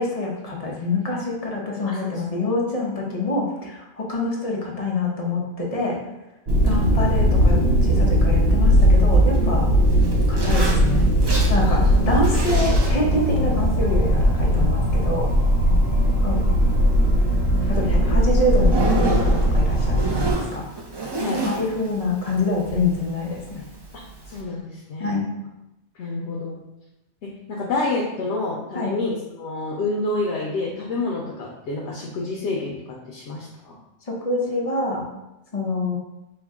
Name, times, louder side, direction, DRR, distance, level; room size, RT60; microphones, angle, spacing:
voice 1, 0.0-6.0 6.6-9.7 10.3-11.1 11.5-15.3 16.2-16.4 17.7-20.6 21.4-23.6 25.0-25.3 28.7-28.9 34.1-35.0 35.5-36.0, left 2 dB, 40° left, -2 dB, 0.7 m, -26 dB
voice 2, 1.8-2.2 6.6-6.8 11.6-12.0 16.0-16.2 18.0-18.2 21.2-21.4 23.9-24.0 24.3-25.1 26.0-26.6 27.2-32.8 33.1-33.8, left 2 dB, 85° left, -4 dB, 0.9 m, -28 dB
Zipper (clothing), 6.5-24.4, right 3 dB, 40° right, 0.3 m, -33 dB
sound 1, 6.5-20.3, equal, 65° right, 0.9 m, -19 dB
4.5 x 2.1 x 3.5 m, 0.93 s
omnidirectional pair, 1.1 m